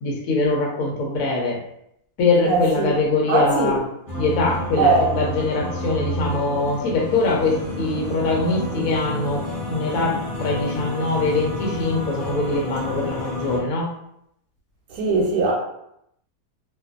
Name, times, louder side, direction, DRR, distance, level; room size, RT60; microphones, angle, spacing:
voice 1, 0.0-1.6 2.2-3.8 4.2-13.9, left 3 dB, 70° left, -2 dB, 1.0 m, -23 dB
voice 2, 2.4-2.9 3.3-3.7 4.8-5.0 14.9-15.5, right 3 dB, 85° right, -3 dB, 1.1 m, -19 dB
sound 1, 4.1-13.6, equal, 35° left, 1.0 m, -30 dB
2.5 x 2.5 x 2.4 m, 0.76 s
omnidirectional pair, 1.6 m